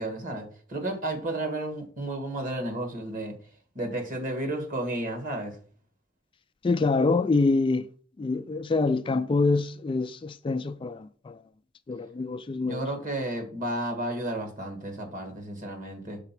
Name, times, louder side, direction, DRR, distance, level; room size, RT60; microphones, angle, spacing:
voice 1, 0.0-3.4 3.8-5.6 12.6-16.2, right 1 dB, 45° right, 2.0 m, -32 dB
voice 2, 6.6-7.9 8.2-11.4 11.9-12.9, left 3 dB, 25° left, 0.3 m, -26 dB
6.5 x 4.1 x 5.9 m
head